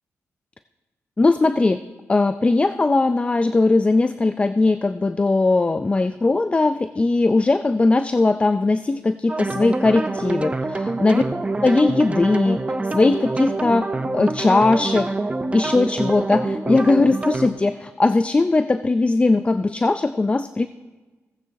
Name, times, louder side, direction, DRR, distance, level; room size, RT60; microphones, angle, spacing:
voice 1, 1.2-1.8 2.1-11.2 11.6-12.6 12.9-13.9 14.1-15.1 15.5-20.7, left 3 dB, 25° left, 12 dB, 0.3 m, -19 dB
sound 1, 9.3-17.5, right 2 dB, 25° right, 0.6 m, -26 dB
17.0 x 8.8 x 2.6 m, 1.2 s
cardioid pair, 75°, 5 cm